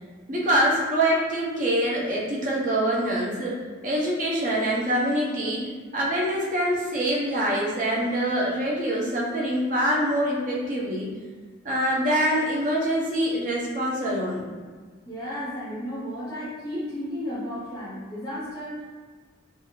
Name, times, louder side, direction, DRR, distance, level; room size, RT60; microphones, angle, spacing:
voice 1, 0.3-3.6 3.8-5.7 5.9-11.1 11.6-14.5, right 1 dB, 40° right, -4 dB, 0.6 m, -25 dB
voice 2, 15.0-18.9, equal, 20° left, -10 dB, 0.5 m, -33 dB
2.5 x 2.4 x 2.9 m, 1.5 s
head